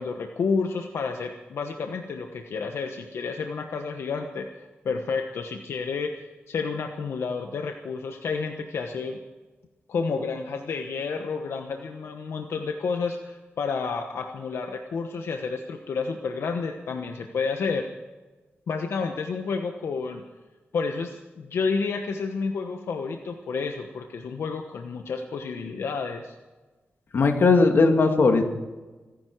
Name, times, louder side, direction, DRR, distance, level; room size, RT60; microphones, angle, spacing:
voice 1, 0.0-4.5 4.8-9.2 9.9-17.9 18.7-20.2 20.7-26.3, left 4 dB, 80° left, 4 dB, 1.2 m, -30 dB
voice 2, 27.1-28.5, left 3 dB, 60° left, 4 dB, 2.1 m, -18 dB
26.0 x 10.5 x 4.7 m, 1.2 s
wide cardioid pair, 135°, 4 cm